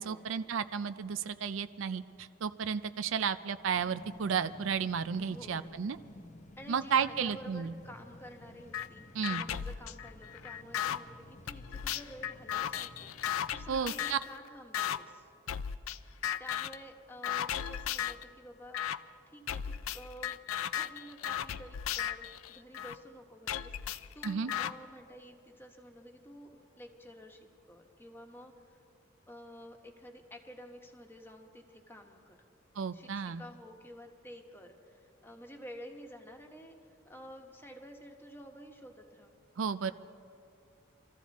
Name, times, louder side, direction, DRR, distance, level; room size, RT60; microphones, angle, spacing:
voice 1, 0.0-6.0 6.7-7.7 9.1-9.4 13.7-14.2 24.2-24.5 32.8-33.4 39.6-39.9, right 6 dB, 70° right, 13 dB, 0.4 m, -33 dB
sound 1, 3.7-13.7, left 1 dB, 35° left, 0.8 m, -54 dB
voice 2, 5.2-5.8 6.6-15.3 16.4-18.8 19.3-20.4 20.7-28.8 29.3-32.4 32.9-36.8 37.0-39.3, equal, 10° left, 3 dB, 1.2 m, -51 dB
sound 2, 8.7-8.9 9.2-11.0 11.5-14.3 14.7-15.0 15.5-16.0 16.2-16.8 17.2-18.2 18.7-19.0 19.5-23.0 23.5-24.7, left 10 dB, 90° left, 0.4 m, -35 dB
24.0 x 14.0 x 4.1 m, 2.3 s
head